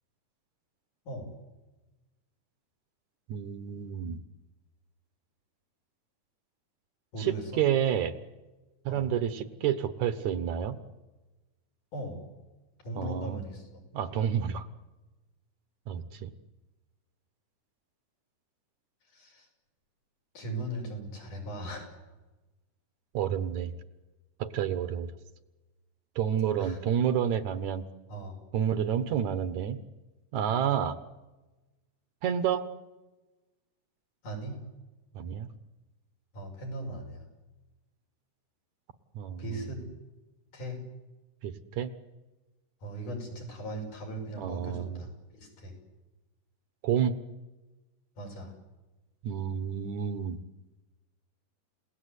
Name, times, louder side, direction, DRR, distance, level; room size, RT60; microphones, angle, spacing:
voice 1, 3.3-4.2 7.2-8.1 8.9-10.8 13.0-13.4 13.9-14.7 15.9-16.3 23.1-23.7 24.4-25.1 26.2-27.8 28.5-29.8 30.3-31.0 32.2-32.7 35.1-35.5 39.1-39.4 41.4-41.9 44.4-45.0 46.8-47.2 49.2-50.4, right 9 dB, 70° right, 11 dB, 2.4 m, -29 dB
voice 2, 7.1-7.6 8.9-9.1 11.9-12.2 12.8-13.8 19.1-19.5 20.4-22.0 26.6-26.8 28.1-28.4 34.2-34.6 36.3-37.2 39.4-39.8 40.5-40.8 42.8-45.8 48.2-48.5, right 1 dB, 85° left, 1 dB, 7.2 m, -38 dB
30.0 x 18.0 x 8.2 m, 1.1 s
omnidirectional pair, 3.6 m